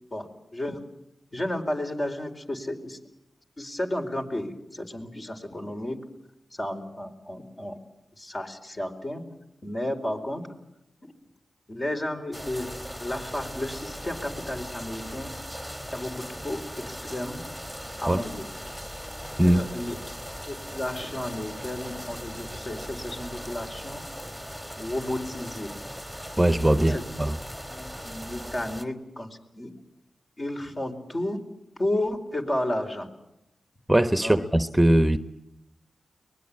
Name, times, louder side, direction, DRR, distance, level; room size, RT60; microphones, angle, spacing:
voice 1, 0.1-0.8 1.3-3.0 3.6-6.0 6.5-7.8 8.2-9.2 9.6-10.4 11.7-12.7 13.0-15.3 15.9-16.6 16.8-17.4 18.0-18.5 19.4-20.0 20.5-24.0 24.8-25.7 26.7-27.0 27.7-29.7 30.4-31.4 31.8-33.1 34.2-34.4, left 1 dB, 40° left, 4 dB, 4.5 m, -32 dB
sound 1, 12.3-28.8, equal, 10° left, 2.9 m, -39 dB
voice 2, 26.4-27.3 33.9-35.2, right 1 dB, 10° right, 10 dB, 1.1 m, -20 dB
24.0 x 20.0 x 8.6 m, 0.86 s
cardioid pair, 45°, 0 cm